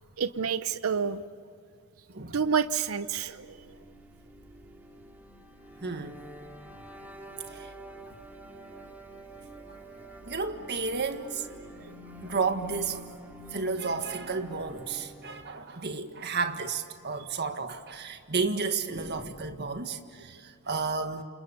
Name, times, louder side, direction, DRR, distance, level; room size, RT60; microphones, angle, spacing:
voice 1, 0.2-1.2 2.3-3.5 11.8-11.9, right 6 dB, 80° right, 0.7 m, -28 dB
sound 1, 2.7-15.6, right 1 dB, 10° right, 2.7 m, -47 dB
voice 2, 5.8-6.2 7.5-7.7 9.7-9.8 10.3-11.5 12.2-13.1 13.5-21.2, right 4 dB, 50° right, 1.8 m, -32 dB
29.0 x 28.0 x 7.0 m
head